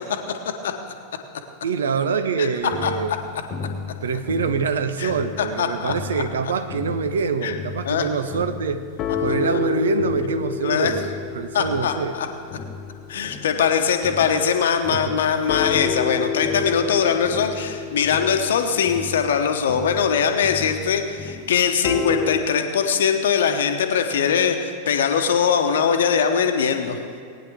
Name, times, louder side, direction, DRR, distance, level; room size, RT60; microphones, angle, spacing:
voice 1, 1.6-3.2 4.0-8.8 9.2-12.1 14.9-15.2, right 5 dB, 65° right, 10 dB, 0.7 m, -25 dB
sound 1, 2.7-5.6 5.9-14.5 14.8-22.4, left 6 dB, 35° left, 0.8 m, -31 dB
voice 2, 5.4-5.9 7.4-7.5 7.8-8.0 10.6-10.9 11.5-12.3 13.1-27.0, left 7 dB, 60° left, 6 dB, 1.0 m, -21 dB
19.0 x 9.7 x 3.5 m, 2.3 s
figure-of-eight pair, 90°, 0 cm